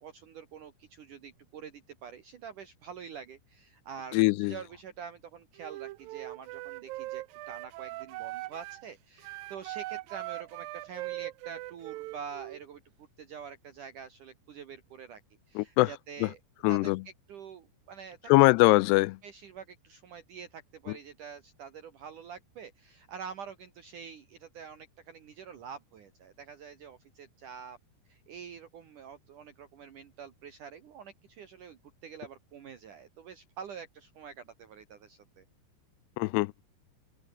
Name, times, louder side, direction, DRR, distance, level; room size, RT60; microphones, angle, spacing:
voice 1, 0.0-12.8 13.2-15.2 15.5-16.4 16.7-16.9 17.3-18.5 19.2-27.8 28.1-35.4, right 7 dB, 55° right, 2.9 m, -46 dB
voice 2, 4.1-4.6 15.6-15.9 16.2-16.3 16.6-17.0 18.3-19.2 20.9-21.0 36.2-36.5, left 23 dB, 85° left, 2.7 m, -22 dB
Wind instrument woodwind instrument, 5.6-8.8 9.2-12.6, right 18 dB, 80° right, 2.1 m, -40 dB
omnidirectional pair, 4.7 m